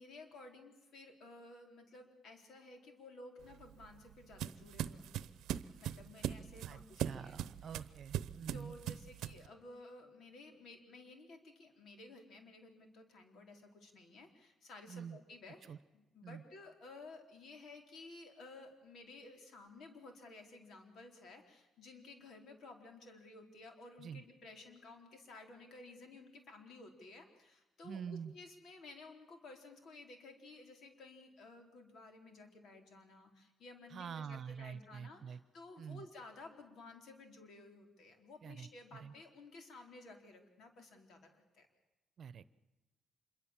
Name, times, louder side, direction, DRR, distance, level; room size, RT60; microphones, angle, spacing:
voice 1, 0.0-5.3 5.8-7.4 7.7-7.8 8.5-41.7, left 2 dB, 70° left, 4 dB, 4.3 m, -55 dB
sound 1, 3.4-9.5, right 11 dB, 85° right, 0.8 m, -41 dB
voice 2, 6.7-8.7 14.9-15.2 15.7-15.8 16.2-16.4 24.0-24.2 27.8-28.3 33.9-35.4 35.8-36.1 38.4-39.1 42.2-42.5, right 7 dB, 55° right, 16 dB, 0.9 m, -46 dB
26.5 x 23.0 x 7.5 m, 1.1 s
cardioid pair, 90°, 0 cm